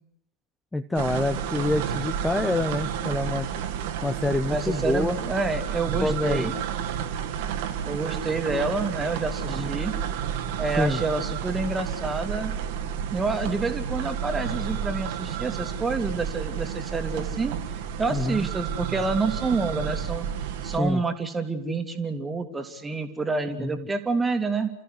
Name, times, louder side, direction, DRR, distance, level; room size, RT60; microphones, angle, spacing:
voice 1, 0.7-3.5 4.0-5.2 6.0-6.5 9.5-9.7 10.8-11.0 18.1-18.5 20.8-21.0 23.6-23.8, left 2 dB, 5° left, 10 dB, 0.9 m, -26 dB
sound 1, 0.9-20.8, right 8 dB, 50° right, 2.0 m, -31 dB
voice 2, 4.5-6.5 7.8-9.9 10.6-12.5 13.1-17.5 18.0-20.3 20.6-24.7, right 3 dB, 15° right, 7 dB, 2.4 m, -28 dB
30.0 x 14.5 x 9.8 m, 0.78 s
figure-of-eight pair, 90°, 0 cm